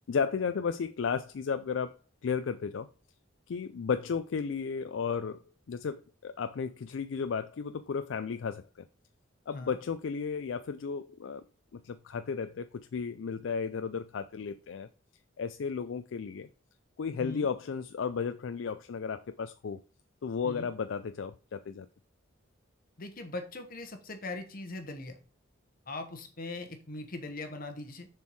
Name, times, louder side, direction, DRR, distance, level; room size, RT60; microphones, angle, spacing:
voice 1, 0.1-2.0 2.2-2.9 3.5-5.4 5.7-8.6 9.5-11.4 11.7-14.9 15.4-16.5 17.0-19.8 20.2-21.9, left 6 dB, 70° left, 0.4 m, -34 dB
voice 2, 17.1-17.5 20.4-20.7 23.0-25.2 25.9-28.1, left 2 dB, 45° left, 1.0 m, -40 dB
6.9 x 4.5 x 4.6 m
head